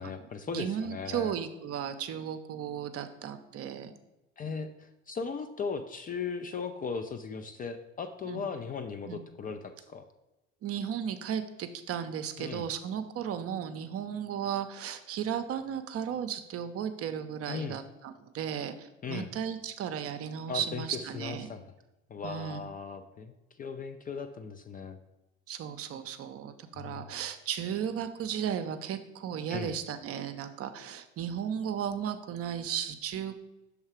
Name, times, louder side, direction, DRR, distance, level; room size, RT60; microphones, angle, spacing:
voice 1, 0.0-1.3 4.4-10.1 12.4-12.7 17.5-17.8 19.0-19.3 20.5-21.6 22.1-25.0 26.7-27.0 29.5-29.7, left 5 dB, 25° left, 7 dB, 0.4 m, -38 dB
voice 2, 0.5-3.9 8.3-8.5 9.0-9.2 10.6-21.5 22.2-22.6 25.5-33.4, right 8 dB, 40° right, 9 dB, 0.6 m, -35 dB
6.3 x 3.3 x 4.8 m, 0.99 s
hypercardioid pair, 60°, 36 cm